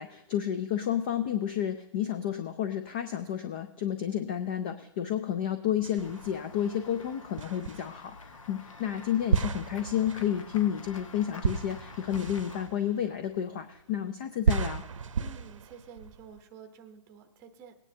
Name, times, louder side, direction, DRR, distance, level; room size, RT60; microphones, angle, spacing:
voice 1, 0.0-14.8, left 10 dB, 20° left, 9 dB, 0.3 m, -31 dB
sound 1, 5.8-6.6 7.4-8.3 9.3-13.8 14.4-16.4, right 6 dB, 80° right, 0.8 m, -33 dB
Run / Walk footsteps / Bell, 6.0-12.7, left 4 dB, 85° left, 1.3 m, -48 dB
voice 2, 15.2-17.7, right 7 dB, 15° right, 5 dB, 0.8 m, -50 dB
18.5 x 9.7 x 2.7 m, 0.90 s
hypercardioid pair, 160°, 16 cm